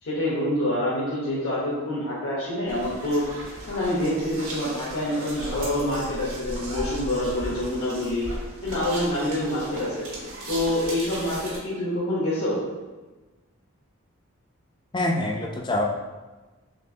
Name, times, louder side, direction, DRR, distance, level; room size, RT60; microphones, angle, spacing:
voice 1, 0.0-3.2 3.7-8.3 8.6-10.1 10.5-12.6, left 1 dB, 75° left, -8 dB, 1.0 m, -26 dB
sound 1, 2.7-11.6, right 1 dB, 90° right, 1.4 m, -36 dB
voice 2, 14.9-15.8, left 1 dB, 20° left, 1 dB, 0.3 m, -25 dB
4.4 x 3.4 x 2.7 m, 1.2 s
head